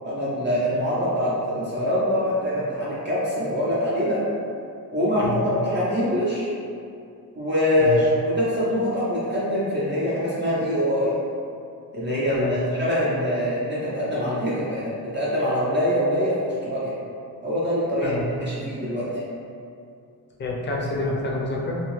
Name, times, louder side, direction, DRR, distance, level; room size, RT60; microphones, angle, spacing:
voice 1, 0.0-4.2 4.9-6.5 7.4-11.1 11.9-16.9 17.4-19.2, equal, 30° right, -8 dB, 0.5 m, -24 dB
voice 2, 7.8-8.1 12.3-12.6 18.0-18.3 20.4-21.8, left 2 dB, 30° left, -3 dB, 0.4 m, -28 dB
2.7 x 2.3 x 3.0 m, 2.5 s
wide cardioid pair, 155°, 36 cm